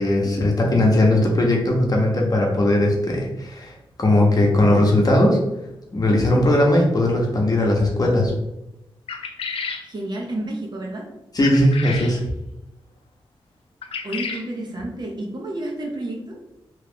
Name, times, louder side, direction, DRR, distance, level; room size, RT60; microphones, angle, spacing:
voice 1, 0.0-5.4 5.9-8.3 11.3-12.2, left 1 dB, 40° left, -1 dB, 0.8 m, -18 dB
sound 1, 9.1-9.9 11.4-12.1 13.8-14.5, left 5 dB, 80° left, 0.4 m, -31 dB
voice 2, 9.9-11.1 14.0-16.4, right 1 dB, 50° right, -1 dB, 0.8 m, -30 dB
3.0 x 2.4 x 3.4 m, 0.90 s
wide cardioid pair, 85°, 10 cm